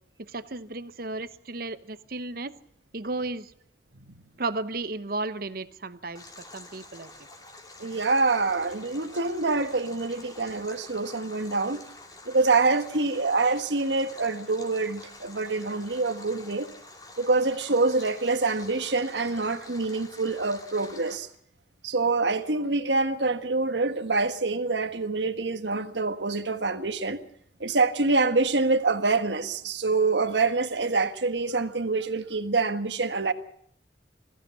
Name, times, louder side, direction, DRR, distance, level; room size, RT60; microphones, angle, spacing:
voice 1, 0.2-2.5 2.9-3.5 4.4-7.3, right 2 dB, 55° right, 1.0 m, -34 dB
Stream, 6.1-21.2, left 2 dB, 20° left, 3.3 m, -47 dB
voice 2, 7.8-11.8 12.2-16.7 17.2-21.3 21.8-27.2 27.6-33.3, right 3 dB, 85° right, 1.5 m, -26 dB
22.0 x 15.5 x 8.4 m
head